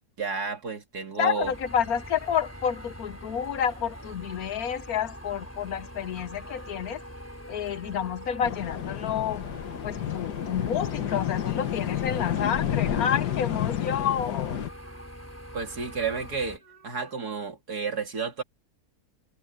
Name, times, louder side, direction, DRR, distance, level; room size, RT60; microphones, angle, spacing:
voice 1, 0.2-1.5 15.5-18.4, right 5 dB, 70° right, 3.2 m, -31 dB
voice 2, 1.2-7.0 7.5-9.4 9.8-14.7, left 8 dB, 65° left, 1.3 m, -29 dB
sound 1, 1.4-16.6, equal, 10° left, 4.3 m, -43 dB
sound 2, 3.1-3.8 4.4-5.5 6.3-7.2 7.9-8.8 9.3-10.0 10.9-12.4 12.7-13.7 14.2-15.1 15.5-16.2 16.5-17.3, right 1 dB, 45° left, 5.7 m, -59 dB
sound 3, 8.4-14.7, left 10 dB, 80° left, 1.7 m, -30 dB
omnidirectional pair, 1.7 m